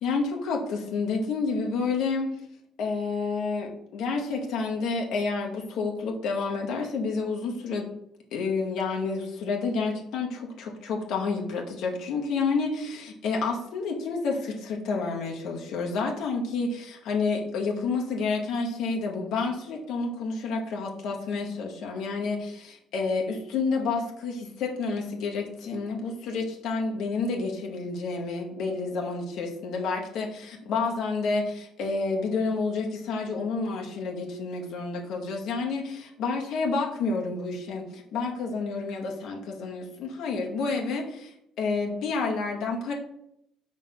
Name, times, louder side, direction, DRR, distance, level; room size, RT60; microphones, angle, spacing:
voice 1, 0.0-2.3 2.8-7.9 8.3-42.9, left 4 dB, 70° left, 0 dB, 1.0 m, -29 dB
5.0 x 3.8 x 5.8 m, 0.77 s
cardioid pair, 140°, 0 cm